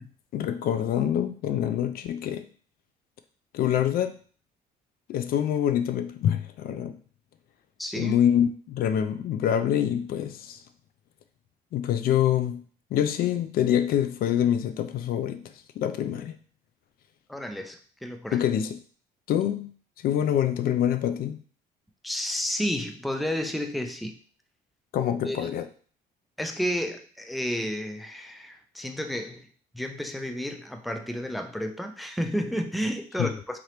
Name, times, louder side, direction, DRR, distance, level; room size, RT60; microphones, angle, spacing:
voice 1, 0.3-2.4 3.5-4.1 5.1-6.9 8.0-10.6 11.7-12.6 12.9-15.4 15.8-16.4 18.3-18.8 19.3-19.7 20.0-21.4 24.9-25.6 33.2-33.3, left 10 dB, 60° left, 10 dB, 0.4 m, -25 dB
voice 2, 7.8-8.2 17.3-18.4 22.0-24.2 25.2-25.6 26.4-29.5 29.7-33.6, equal, ahead, 5 dB, 0.4 m, -31 dB
3.8 x 2.9 x 3.2 m, 0.43 s
cardioid pair, 110°, 17 cm